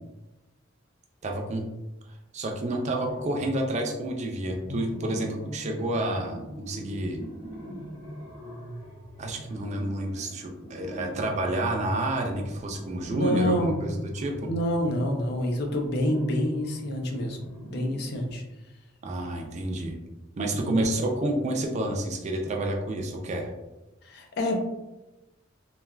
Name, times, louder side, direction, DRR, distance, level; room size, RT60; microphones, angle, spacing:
voice 1, 1.2-1.7 2.3-7.2 9.2-14.5 19.0-20.0 20.4-23.5, right 1 dB, 35° right, 2 dB, 0.4 m, -29 dB
sound 1, 2.7-4.1 4.4-18.3, equal, 90° left, 1.3 m, -41 dB
voice 2, 13.1-13.8 14.4-18.4 20.6-20.7 24.0-24.6, left 1 dB, 55° left, 3 dB, 0.4 m, -27 dB
3.2 x 2.2 x 2.2 m, 1.0 s
head